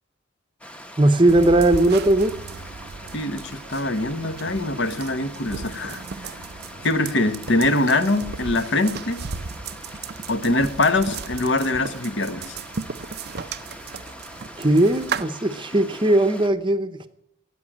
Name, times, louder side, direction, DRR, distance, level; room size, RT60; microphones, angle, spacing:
Stream, 0.6-16.5, equal, 5° left, 0.9 m, -42 dB
voice 1, 1.0-2.3 14.6-17.1, right 1 dB, 25° right, 10 dB, 0.8 m, -18 dB
sound 1, 1.3-15.2, right 5 dB, 50° right, 0.5 m, -35 dB
voice 2, 3.1-6.3 6.8-9.2 10.3-12.6, left 2 dB, 60° left, 10 dB, 1.1 m, -23 dB
14.0 x 8.9 x 8.5 m, 0.75 s
head